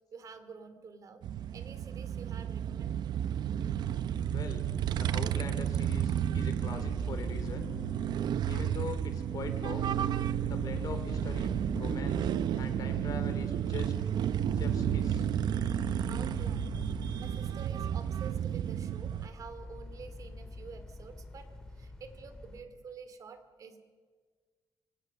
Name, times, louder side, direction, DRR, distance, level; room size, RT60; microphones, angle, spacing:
voice 1, 0.1-1.2 1.5-3.0 10.5-10.7 16.1-21.5 21.7-23.8, right 5 dB, 45° right, 10 dB, 2.7 m, -49 dB
sound 1, 1.2-19.3, right 10 dB, 65° right, 0.8 m, -32 dB
voice 2, 4.3-4.7 4.9-7.7 8.5-9.9 10.5-12.3 12.6-13.9 14.6-15.3, left 5 dB, 50° left, 7 dB, 3.9 m, -42 dB
sound 2, 4.7-22.6, left 2 dB, 10° left, 2.8 m, -45 dB
25.5 x 25.0 x 6.7 m, 1.5 s
cardioid pair, 145°, 8 cm